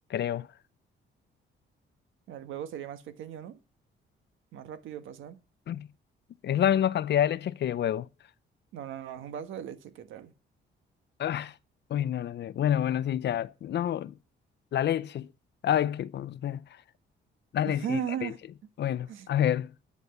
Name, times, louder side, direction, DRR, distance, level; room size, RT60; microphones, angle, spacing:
voice 1, 0.1-0.5 5.7-5.9 6.4-8.1 11.2-11.5 11.9-14.1 14.7-15.3 15.6-16.6 17.5-18.3 18.8-19.7, left 10 dB, 60° left, 0.7 m, -28 dB
voice 2, 2.3-3.6 4.5-5.4 8.7-10.3 17.6-18.4 19.1-19.3, right 10 dB, 80° right, 1.4 m, -37 dB
11.0 x 8.1 x 7.1 m
cardioid pair, 90°, 20 cm